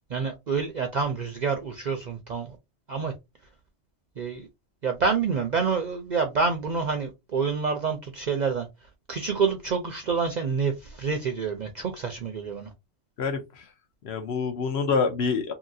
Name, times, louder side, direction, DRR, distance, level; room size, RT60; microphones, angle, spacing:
voice 1, 0.1-2.6 2.9-3.1 4.2-4.5 4.8-8.7 9.1-12.7, right 5 dB, 55° right, 0.5 m, -27 dB
voice 2, 13.2-13.7 14.0-15.5, left 5 dB, 65° left, 0.9 m, -26 dB
2.8 x 2.7 x 2.5 m
omnidirectional pair, 1.3 m